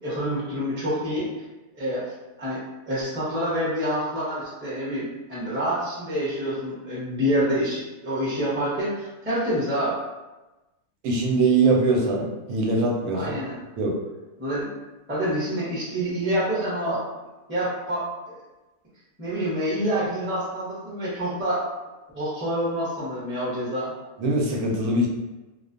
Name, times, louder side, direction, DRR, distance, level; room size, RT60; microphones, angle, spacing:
voice 1, 0.0-1.3 1.7-2.1 2.4-2.6 2.9-10.0 13.1-13.6 14.4-14.7 15.1-17.0 17.5-18.4 19.2-21.6 22.1-23.9, equal, 10° right, -9 dB, 0.6 m, -27 dB
voice 2, 11.0-13.3 13.8-13.9 24.2-25.1, right 2 dB, 85° right, -1 dB, 1.1 m, -22 dB
2.5 x 2.2 x 2.5 m, 1.1 s
omnidirectional pair, 1.5 m